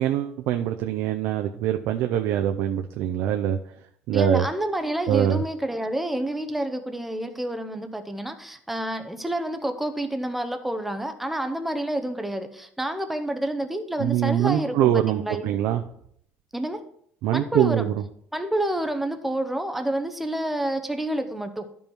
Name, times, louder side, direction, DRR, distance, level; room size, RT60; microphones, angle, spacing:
voice 1, 0.0-3.6 4.1-4.4 5.1-5.4 14.0-15.8 17.2-17.9, right 11 dB, 60° right, 5 dB, 0.6 m, -23 dB
voice 2, 4.1-15.5 16.5-16.8 17.3-17.9 18.3-21.7, right 1 dB, 5° right, 7 dB, 0.6 m, -28 dB
12.0 x 5.4 x 4.5 m, 0.67 s
cardioid pair, 180°, 4 cm